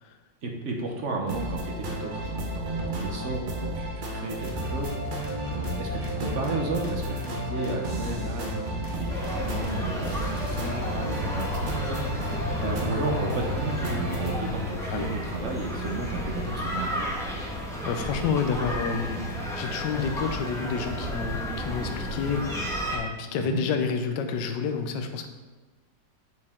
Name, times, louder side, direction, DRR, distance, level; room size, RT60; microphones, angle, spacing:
voice 1, 0.4-17.1 23.3-23.6, right 3 dB, 50° right, 1 dB, 1.0 m, -33 dB
sound 1, 1.3-14.4, right 1 dB, 85° right, 0.4 m, -33 dB
sound 2, 4.4-11.1, left 3 dB, 25° left, 0.4 m, -38 dB
sound 3, 9.1-23.0, equal, ahead, 0.8 m, -32 dB
voice 2, 17.9-19.2 19.5-22.7 22.9-25.3, left 6 dB, 70° left, 6 dB, 1.2 m, -29 dB
8.4 x 4.6 x 3.6 m, 1.3 s
omnidirectional pair, 2.1 m